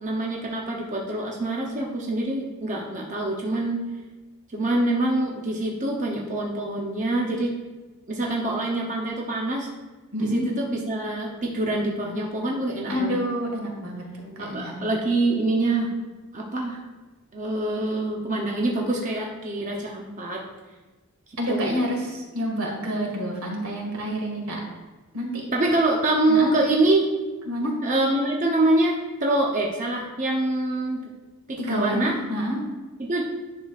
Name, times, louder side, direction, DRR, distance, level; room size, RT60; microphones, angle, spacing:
voice 1, 0.0-3.8 4.5-7.5 8.1-9.7 10.3-13.2 14.4-15.9 16.3-16.8 17.3-20.4 21.5-21.8 25.5-27.1 27.8-31.1 31.5-32.1 33.0-33.2, right 2 dB, 35° right, -1 dB, 0.7 m, -25 dB
voice 2, 10.1-10.5 12.9-14.7 21.4-24.6 25.1-25.5 26.3-26.5 27.5-27.8 31.6-32.6, equal, 85° right, 0 dB, 1.9 m, -28 dB
10.0 x 5.9 x 2.5 m, 1.2 s
head